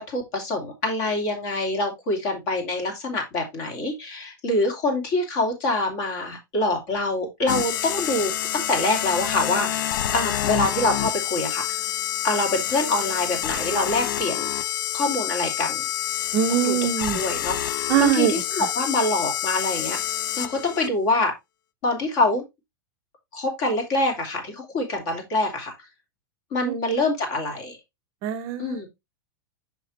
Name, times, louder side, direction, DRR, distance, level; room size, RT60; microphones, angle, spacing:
voice 1, 0.0-11.8 12.2-14.5 14.9-15.8 16.5-16.8 17.1-20.0 20.4-21.3 21.8-22.4 23.3-25.7 26.5-27.8 28.6-28.9, left 2 dB, 35° left, 2.8 m, -25 dB
sound 1, 7.5-20.9, left 11 dB, 60° left, 0.6 m, -27 dB
voice 2, 16.3-17.2 17.9-18.7 26.6-26.7 28.2-28.8, right 10 dB, 30° right, 0.5 m, -23 dB
6.9 x 5.8 x 3.1 m
supercardioid pair, 170°, 12 cm